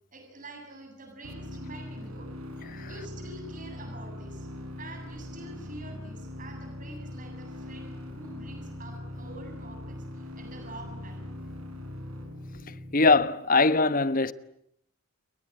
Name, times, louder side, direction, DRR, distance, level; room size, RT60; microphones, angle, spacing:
voice 1, 0.1-2.3 2.8-4.5 4.8-11.3, right 2 dB, 35° right, 7.5 m, -46 dB
sound 1, 1.2-13.2, left 1 dB, 85° right, 6.2 m, -41 dB
voice 2, 12.9-14.3, left 3 dB, 40° left, 1.1 m, -22 dB
29.5 x 22.5 x 8.7 m
head